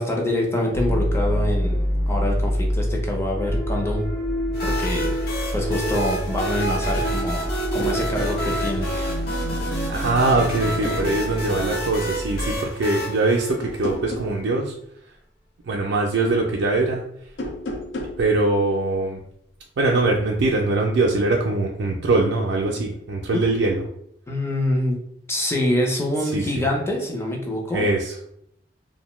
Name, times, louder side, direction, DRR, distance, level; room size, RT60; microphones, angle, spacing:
voice 1, 0.0-4.1 4.6-5.1 5.5-8.9 23.3-23.4 24.3-25.0 25.3-27.9, left 1 dB, 15° left, 0 dB, 0.5 m, -25 dB
sound 1, 0.7-12.6, equal, 30° left, 1.1 m, -26 dB
sound 2, 4.5-14.2, right 1 dB, 60° left, 0.8 m, -30 dB
sound 3, 7.6-8.0 9.6-9.9 10.3-11.1 13.6-14.4 17.3-18.2, left 1 dB, 80° left, 0.5 m, -32 dB
voice 2, 9.6-14.8 15.7-17.0 18.2-19.2 19.8-23.8 26.3-26.7 27.7-28.1, right 2 dB, 75° right, -1 dB, 0.4 m, -22 dB
2.6 x 2.1 x 3.0 m, 0.73 s
head